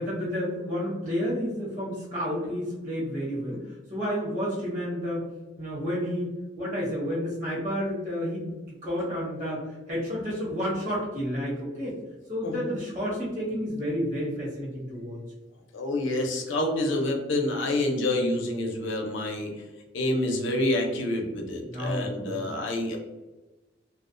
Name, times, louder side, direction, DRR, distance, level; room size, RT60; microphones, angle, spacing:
voice 1, 0.0-3.6 3.9-5.2 5.6-6.3 6.6-12.0 12.3-15.2 21.7-22.5, equal, 40° right, -6 dB, 0.9 m, -30 dB
voice 2, 12.4-12.8 15.7-19.5 19.9-23.0, left 1 dB, 85° left, 1 dB, 0.5 m, -28 dB
2.3 x 2.1 x 2.5 m, 1.1 s
head